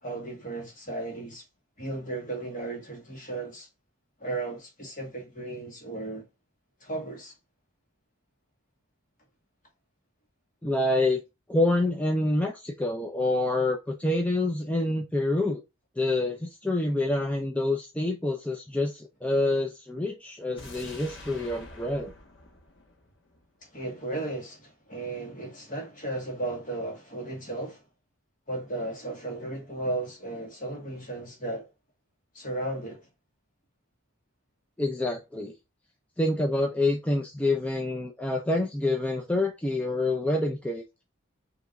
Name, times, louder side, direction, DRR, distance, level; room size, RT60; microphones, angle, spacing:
voice 1, 0.0-1.4 1.8-3.7 4.2-6.2 6.8-7.3 23.7-27.8 28.5-31.7 32.3-33.1, right 2 dB, 40° left, 1.7 m, -35 dB
voice 2, 10.6-11.2 11.5-15.6 16.0-22.1 34.8-35.5 36.2-40.8, left 2 dB, 5° left, 0.4 m, -27 dB
sound 1, 20.6-23.7 24.0-24.1, left 2 dB, 55° left, 1.2 m, -47 dB
5.7 x 2.9 x 2.6 m
head